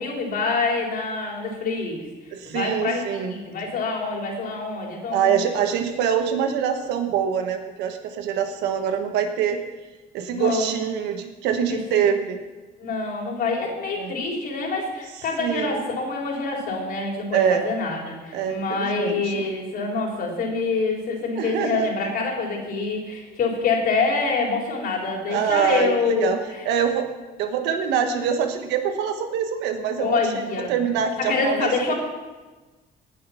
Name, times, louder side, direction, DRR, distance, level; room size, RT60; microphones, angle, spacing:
voice 1, 0.0-2.1 2.5-3.0 3.3-5.4 10.3-10.7 11.7-12.0 12.8-26.6 30.0-30.7 31.2-31.9, left 4 dB, 60° left, 0 dB, 3.8 m, -26 dB
voice 2, 2.3-3.3 5.1-9.6 10.1-12.4 14.0-14.1 15.4-15.8 17.3-17.7 18.3-19.4 21.4-21.9 25.3-26.4 26.6-27.1 27.4-31.9, right 8 dB, 90° right, 6 dB, 1.4 m, -24 dB
18.0 x 6.7 x 5.7 m, 1.2 s
cardioid pair, 110°, 17 cm